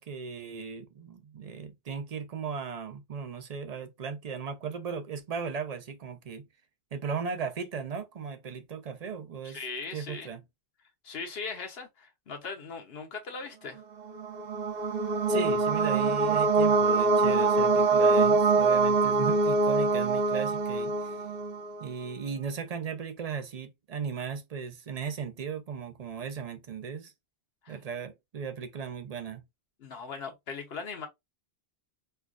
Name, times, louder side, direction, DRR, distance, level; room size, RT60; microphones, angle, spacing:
voice 1, 0.0-6.4 6.9-9.6 9.9-10.4 15.3-21.2 21.8-27.1 27.7-29.4, right 6 dB, 45° right, 0.6 m, -37 dB
voice 2, 9.4-10.3 11.0-13.8 27.6-27.8 29.8-31.1, left 4 dB, 70° left, 1.0 m, -39 dB
sound 1, 14.1-21.8, right 3 dB, 65° right, 1.0 m, -24 dB
4.4 x 2.3 x 2.4 m
omnidirectional pair, 1.1 m